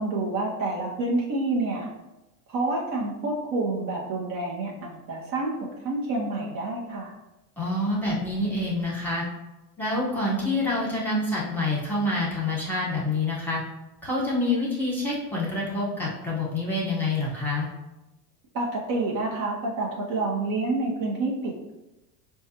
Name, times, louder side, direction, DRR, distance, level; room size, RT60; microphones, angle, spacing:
voice 1, 0.0-1.9 2.5-7.1 18.5-21.7, right 2 dB, 45° right, -2 dB, 0.8 m, -28 dB
voice 2, 7.6-9.2 9.8-13.6 14.0-17.7, left 2 dB, 5° left, -6 dB, 1.2 m, -27 dB
4.4 x 2.3 x 2.8 m, 0.99 s
supercardioid pair, 105°, 47 cm